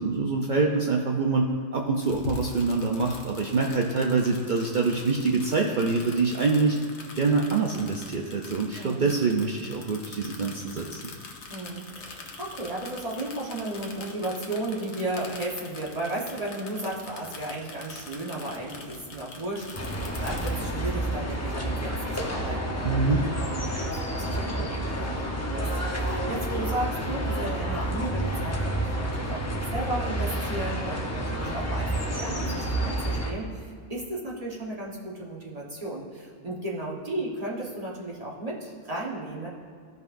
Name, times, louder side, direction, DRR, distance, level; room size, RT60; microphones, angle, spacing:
voice 1, 0.0-6.8 7.1-11.1 22.8-23.3, right 4 dB, 50° right, 0 dB, 0.7 m, -25 dB
sound 1, 1.9-20.5, left 3 dB, 80° left, 1.2 m, -44 dB
voice 2, 8.7-9.1 11.5-39.5, right 1 dB, 35° right, -4 dB, 1.3 m, -34 dB
sound 2, 19.7-33.3, right 1 dB, 15° left, 0.8 m, -29 dB
14.5 x 5.3 x 2.6 m, 2.1 s
omnidirectional pair, 1.2 m